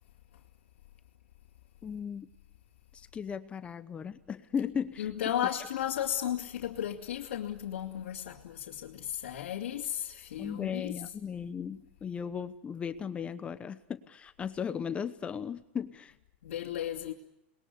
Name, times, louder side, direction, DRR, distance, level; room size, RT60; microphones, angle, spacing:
voice 1, 1.8-2.3 2.9-5.1 10.4-16.1, left 7 dB, 15° left, 1.0 m, -36 dB
voice 2, 5.0-10.9 16.4-17.1, left 10 dB, 85° left, 2.7 m, -34 dB
28.0 x 21.5 x 8.1 m
supercardioid pair, 145°, 7 cm